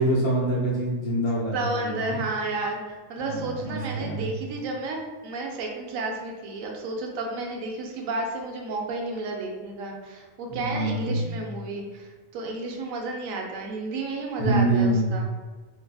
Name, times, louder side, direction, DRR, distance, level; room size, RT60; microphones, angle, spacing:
voice 1, 0.0-2.2 3.2-4.3 10.5-11.2 14.4-15.1, right 1 dB, 55° left, -5 dB, 0.8 m, -25 dB
voice 2, 1.5-15.3, right 2 dB, 85° right, 1 dB, 1.0 m, -32 dB
2.7 x 2.6 x 2.2 m, 1.3 s
omnidirectional pair, 1.4 m